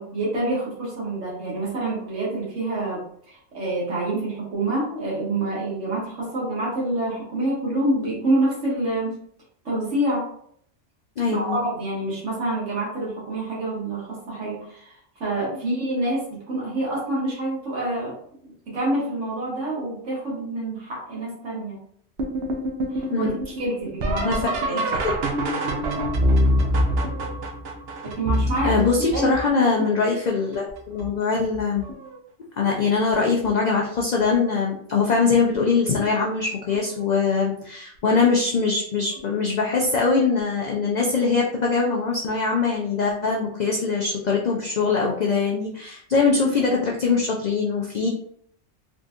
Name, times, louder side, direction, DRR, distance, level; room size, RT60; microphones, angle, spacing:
voice 1, 0.0-9.1 9.6-10.3 11.3-18.2 18.7-21.8 22.9-24.8 28.0-29.8, right 1 dB, 80° right, -6 dB, 1.5 m, -27 dB
voice 2, 11.2-11.6 23.1-23.3 24.2-24.4 24.7-25.1 28.6-31.8 32.6-48.1, left 4 dB, 60° left, -1 dB, 0.4 m, -22 dB
sound 1, 22.2-29.9 30.5-31.1 31.5-32.2 33.4-33.5 34.2-34.6 36.7-36.8 39.2-39.3, equal, 65° right, 0.8 m, -25 dB
3.7 x 2.6 x 2.3 m, 0.64 s
omnidirectional pair, 1.2 m